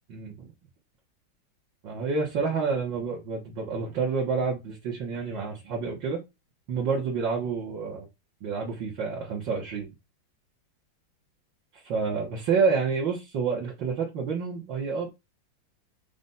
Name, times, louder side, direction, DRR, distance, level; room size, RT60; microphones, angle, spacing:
voice 1, 0.1-0.5 1.8-6.2 6.7-8.1 8.4-9.9 11.7-15.1, right 5 dB, 65° right, 2.3 m, -28 dB
6.1 x 3.4 x 5.5 m
omnidirectional pair, 2.2 m